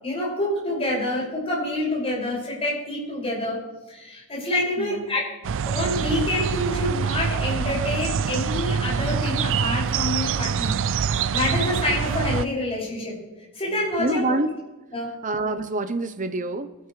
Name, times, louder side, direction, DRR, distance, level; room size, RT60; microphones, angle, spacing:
voice 1, 0.0-3.6 3.9-5.2 5.6-10.8 11.3-13.2 13.5-14.4 14.9-15.2, left 1 dB, 25° left, -4 dB, 5.9 m, -27 dB
voice 2, 4.8-5.2 14.0-14.5 15.2-16.7, right 2 dB, 35° right, 9 dB, 0.8 m, -26 dB
sound 1, 5.4-12.5, right 6 dB, 60° right, 0.4 m, -25 dB
22.5 x 12.5 x 3.3 m, 1.1 s
head